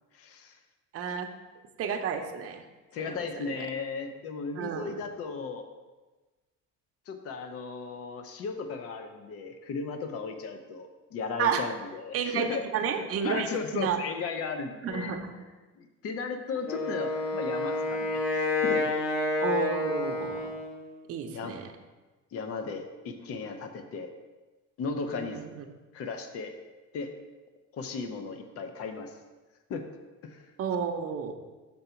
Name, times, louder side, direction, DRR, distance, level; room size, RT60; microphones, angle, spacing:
voice 1, 0.1-0.6 2.9-5.6 7.1-12.7 12.9-15.2 15.8-19.0 21.3-21.6 22.3-24.1 24.8-25.4 25.9-26.5 26.9-27.1 27.7-29.2 29.7-29.9 30.2-30.5, left 4 dB, 50° left, 6 dB, 0.6 m, -36 dB
voice 2, 0.9-1.3 1.8-2.6 3.0-3.7 4.6-5.0 11.4-11.6 12.1-13.5 13.7-14.0 14.8-15.4 19.4-20.5 21.1-21.7 25.1-25.6 30.6-31.3, right 7 dB, 50° right, 5 dB, 0.7 m, -31 dB
Wind instrument woodwind instrument, 16.6-20.9, left 3 dB, 85° left, 1.3 m, -29 dB
6.9 x 3.9 x 5.7 m, 1.2 s
cardioid pair, 155°, 31 cm